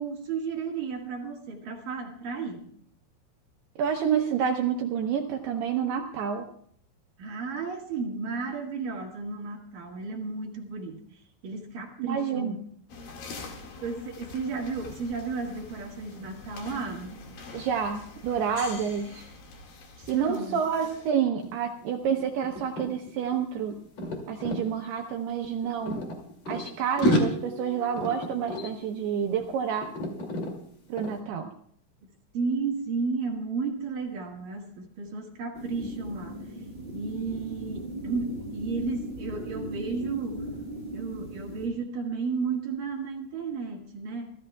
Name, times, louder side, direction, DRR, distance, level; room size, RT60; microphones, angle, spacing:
voice 1, 0.0-2.7 7.2-11.0 11.4-12.6 13.8-17.2 20.0-20.6 32.3-36.5 36.9-40.5 40.9-44.3, right 4 dB, 60° right, 0 dB, 2.8 m, -33 dB
voice 2, 3.8-6.5 12.0-12.6 17.5-19.2 20.1-23.8 24.3-26.0 26.5-29.9 30.9-31.5, right 7 dB, 75° right, 3 dB, 2.5 m, -28 dB
sound 1, 12.9-21.1, left 3 dB, 55° left, 3.2 m, -45 dB
sound 2, 21.4-21.6 21.8-24.6 25.4-26.7 27.0-29.6 29.8-30.5 31.0-31.2, equal, 40° left, 3.0 m, -31 dB
sound 3, 35.5-41.7, right 1 dB, 20° right, 5.9 m, -38 dB
28.0 x 14.0 x 2.3 m, 0.63 s
omnidirectional pair, 5.6 m